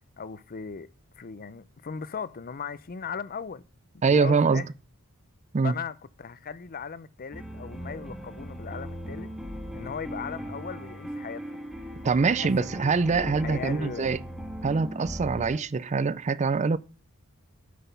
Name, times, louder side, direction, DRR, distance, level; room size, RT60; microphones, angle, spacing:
voice 1, 0.2-0.9 1.2-3.6 4.1-4.7 5.6-9.3 9.7-11.7 12.2-12.7 13.1-14.2, left 6 dB, 40° left, 0.6 m, -38 dB
voice 2, 4.0-4.6 5.5-5.7 12.0-14.2 14.6-16.8, right 4 dB, 30° right, 0.4 m, -24 dB
sound 1, 7.3-15.6, equal, ahead, 1.6 m, -38 dB
9.4 x 6.3 x 6.8 m
head